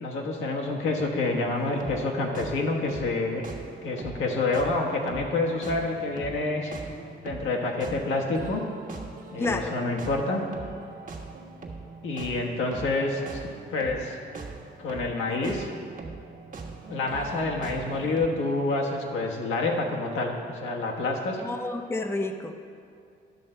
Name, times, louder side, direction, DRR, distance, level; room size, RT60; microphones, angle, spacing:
voice 1, 0.0-3.4 3.8-6.7 7.2-8.7 9.3-10.4 12.0-14.2 14.8-15.7 16.9-21.4, left 2 dB, 80° left, 0 dB, 1.3 m, -28 dB
sound 1, 1.6-18.3, right 3 dB, 45° right, 1.2 m, -41 dB
voice 2, 9.4-9.7 15.3-15.5 21.4-22.6, left 2 dB, 10° left, 5 dB, 0.6 m, -30 dB
10.5 x 6.4 x 4.4 m, 2.5 s
cardioid pair, 90°, 20 cm